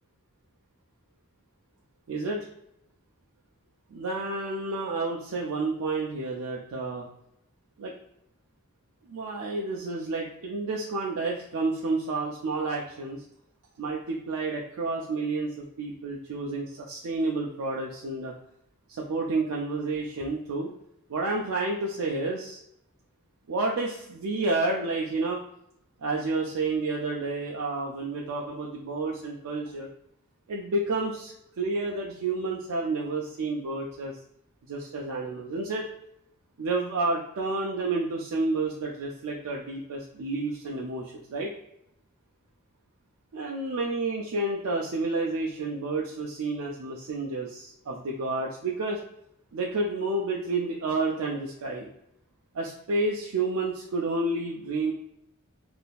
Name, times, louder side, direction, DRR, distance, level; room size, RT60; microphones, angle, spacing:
voice 1, 2.1-2.5 3.9-7.1 7.8-7.9 9.1-13.2 13.8-18.3 18.9-20.7 21.1-22.6 23.5-25.4 26.0-29.9 30.5-34.2 34.7-35.9 36.6-41.5 43.3-49.0 49.5-51.9 52.5-54.9, right 3 dB, 80° right, -1 dB, 0.4 m, -30 dB
3.5 x 2.6 x 2.3 m, 0.78 s
head